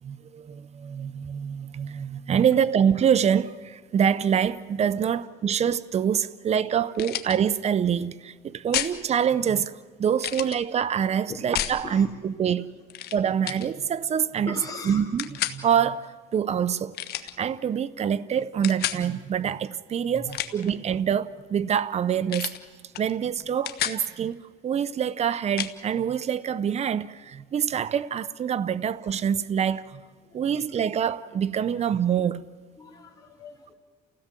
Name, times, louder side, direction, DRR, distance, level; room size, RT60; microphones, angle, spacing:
voice 1, 0.0-12.7 13.1-14.5 14.9-16.9 17.4-22.5 23.0-30.0 30.3-32.5, right 8 dB, 40° right, 0.8 m, -25 dB
sound 1, 6.9-7.4 8.7-9.0 10.2-10.6 11.5-11.8 12.9-13.2 13.4-13.7 15.2-15.6 16.9-17.3 18.6-19.0 20.2-20.7 22.3-22.6 22.9-23.1 23.4-24.0 25.6-25.7, left 12 dB, 70° left, 1.3 m, -30 dB
voice 2, 14.5-15.0 20.1-20.4 30.2-30.7 31.6-31.7 32.8-33.8, left 3 dB, 20° left, 4.4 m, -40 dB
29.5 x 16.5 x 7.5 m
cardioid pair, 110°, 17 cm